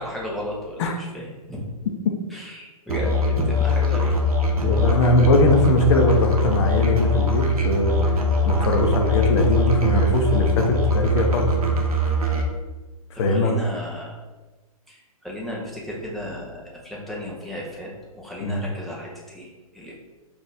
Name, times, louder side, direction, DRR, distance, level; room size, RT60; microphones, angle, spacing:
voice 1, 0.0-1.6 2.3-4.3 13.3-14.2 14.9-19.9, equal, ahead, -5 dB, 0.8 m, -34 dB
Musical instrument, 2.9-12.5, left 1 dB, 75° right, 0.8 m, -22 dB
voice 2, 4.6-8.1 8.4-11.5 13.2-13.6 18.4-18.6, left 1 dB, 50° left, 3 dB, 0.7 m, -20 dB
4.1 x 2.7 x 3.3 m, 1.2 s
figure-of-eight pair, 120°, 19 cm